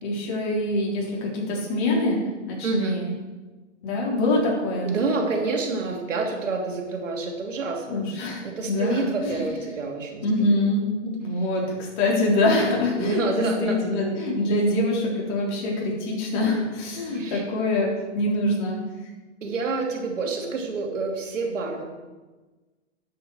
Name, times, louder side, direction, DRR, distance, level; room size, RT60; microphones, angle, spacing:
voice 1, 0.0-3.1 3.8-4.9 7.9-9.6 10.2-18.8, left 2 dB, 40° left, -2 dB, 3.7 m, -25 dB
voice 2, 2.6-3.0 4.8-10.6 13.0-14.0 17.1-17.5 19.4-21.8, right 3 dB, 85° right, 1 dB, 3.0 m, -28 dB
9.4 x 8.2 x 6.5 m, 1.2 s
hypercardioid pair, 150°, 37 cm